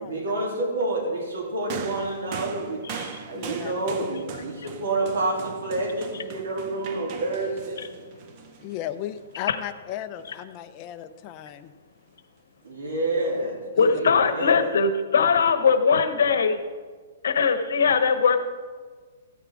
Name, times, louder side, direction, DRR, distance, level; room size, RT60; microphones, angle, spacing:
voice 1, 0.0-2.8 3.3-7.8 12.6-14.6, right 2 dB, 70° right, -1 dB, 3.3 m, -28 dB
sound 1, 1.7-9.2 10.2-10.3, right 6 dB, 25° right, 0.6 m, -39 dB
voice 2, 3.3-3.7 8.6-11.7 13.8-13.9, left 11 dB, 25° left, 9 dB, 0.4 m, -35 dB
voice 3, 13.8-16.6 17.2-18.4, left 5 dB, 75° left, 10 dB, 1.0 m, -20 dB
14.0 x 9.3 x 3.6 m, 1.5 s
hypercardioid pair, 175°, 0 cm